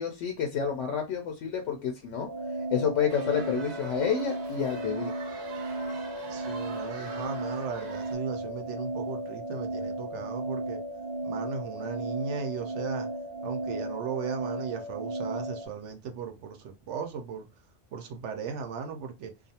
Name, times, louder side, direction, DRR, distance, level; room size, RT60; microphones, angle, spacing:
voice 1, 0.0-2.3 2.7-5.1, left 7 dB, 75° left, 0.9 m, -29 dB
sound 1, 2.2-15.7, right 2 dB, 10° left, 0.6 m, -35 dB
sound 2, 3.1-8.1, right 4 dB, 45° right, 0.6 m, -45 dB
voice 2, 6.3-10.8 11.2-13.1 13.4-17.5 17.9-19.3, right 6 dB, 75° right, 0.9 m, -37 dB
2.5 x 2.3 x 2.7 m
omnidirectional pair, 1.3 m